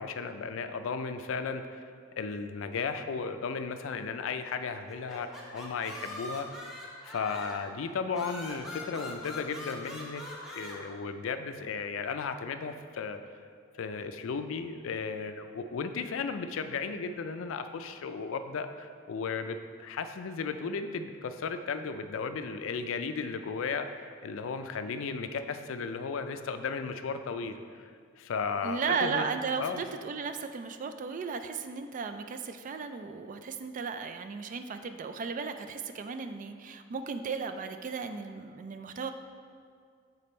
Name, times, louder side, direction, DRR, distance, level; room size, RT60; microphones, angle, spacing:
voice 1, 0.0-1.8 2.2-6.7 7.0-10.2 10.5-13.2 13.8-27.9 28.2-29.3 29.6-29.8, left 5 dB, 80° left, 9 dB, 0.4 m, -35 dB
sound 1, 4.9-7.7 8.1-10.8, left 1 dB, ahead, 0.9 m, -42 dB
voice 2, 28.6-39.1, right 5 dB, 40° right, 8 dB, 0.3 m, -35 dB
6.9 x 4.1 x 4.2 m, 2.1 s
head